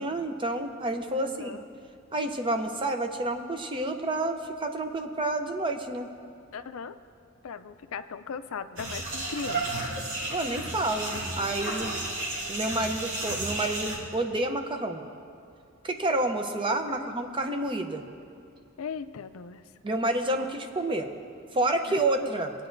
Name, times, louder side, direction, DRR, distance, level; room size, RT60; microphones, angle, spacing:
voice 1, 0.0-1.6 2.1-6.1 10.3-11.9 12.5-15.0 15.8-18.0 19.8-21.1 21.5-22.5, right 2 dB, 25° right, 5 dB, 0.6 m, -29 dB
voice 2, 1.2-1.6 6.5-6.9 7.4-9.9 16.9-17.1 18.8-19.6 22.2-22.3, left 6 dB, 70° left, 11 dB, 0.4 m, -38 dB
sound 1, 8.8-14.0, right 2 dB, 60° right, 2.1 m, -33 dB
21.0 x 9.0 x 2.6 m, 2.4 s
head